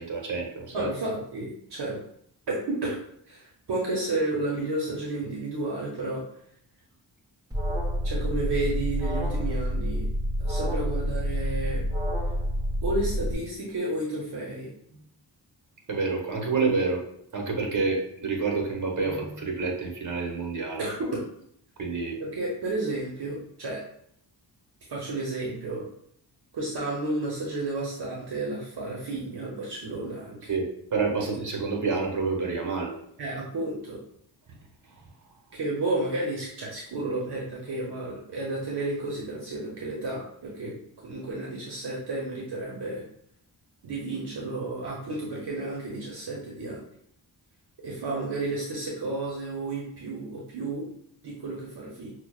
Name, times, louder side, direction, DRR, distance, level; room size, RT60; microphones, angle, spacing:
voice 1, 0.0-0.9 14.9-15.0 15.9-17.0 17.3-20.8 21.8-22.2 30.5-32.9, right 4 dB, 45° right, 0 dB, 1.1 m, -28 dB
voice 2, 0.7-2.0 2.5-3.0 3.3-6.2 8.0-10.0 10.4-11.8 12.8-14.7 20.8-21.2 22.2-23.8 24.9-25.9 26.5-30.5 33.2-34.0 35.5-43.0 43.8-46.8 47.8-50.9 51.2-52.1, right 2 dB, 65° right, -3 dB, 0.8 m, -32 dB
Alarm, 7.5-13.3, equal, 10° right, 0.9 m, -28 dB
5.8 x 2.2 x 2.3 m, 0.71 s
cardioid pair, 80°, 43 cm